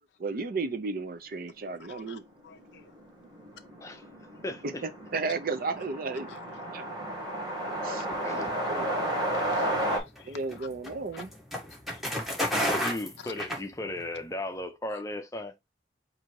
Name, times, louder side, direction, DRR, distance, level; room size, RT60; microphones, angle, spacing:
voice 1, 0.2-2.2 4.6-6.3 6.7-6.8 7.8-8.9 10.2-11.3, right 3 dB, 50° right, 0.5 m, -34 dB
voice 2, 1.9-2.2 2.4-2.8 7.6-7.7 9.3-9.7 9.9-10.7 11.9-12.0 13.2-13.3, left 8 dB, 65° left, 0.4 m, -50 dB
sound 1, 2.5-2.6 2.8-2.9 3.2-10.0, right 1 dB, 25° right, 1.3 m, -32 dB
voice 3, 4.4-4.9 7.7-8.8 12.7-15.5, left 1 dB, 20° left, 0.6 m, -36 dB
sound 2, 9.8-14.2, equal, ahead, 1.2 m, -32 dB
3.9 x 2.7 x 4.6 m
head